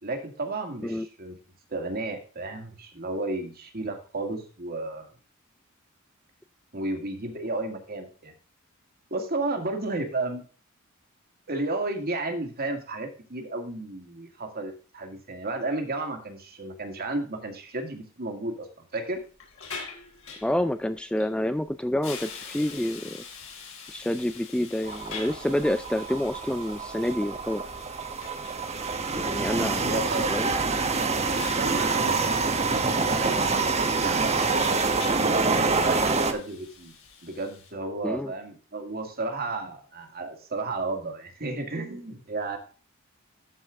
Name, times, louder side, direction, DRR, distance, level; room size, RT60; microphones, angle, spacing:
voice 1, 0.0-1.4 1.7-5.1 6.7-8.3 9.1-10.4 11.5-19.2 29.5-30.4 31.6-33.4 33.8-35.4 35.8-36.9 37.2-42.6, right 2 dB, 45° right, 4 dB, 2.1 m, -33 dB
Hiss, 19.1-37.7, left 5 dB, 70° left, 3.6 m, -45 dB
voice 2, 20.4-23.2 23.9-27.6 29.1-30.5 38.0-38.3, left 1 dB, 5° left, 11 dB, 0.4 m, -28 dB
sound 1, 24.8-36.3, right 4 dB, 30° right, 1.1 m, -26 dB
13.0 x 5.5 x 3.6 m, 0.38 s
head